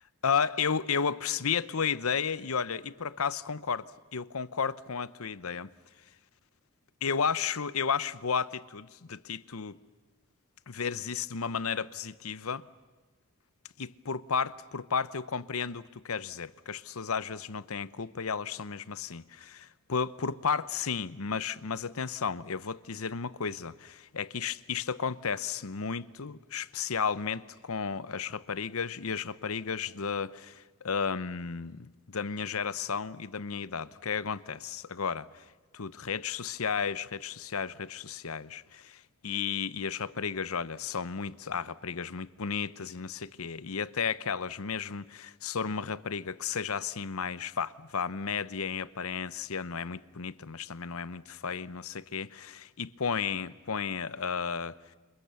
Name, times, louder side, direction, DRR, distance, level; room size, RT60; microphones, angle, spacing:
voice 1, 0.2-5.7 7.0-9.8 10.7-12.7 13.8-35.4 35.7-54.8, left 6 dB, 90° left, 0.8 m, -33 dB
29.5 x 27.0 x 7.0 m
head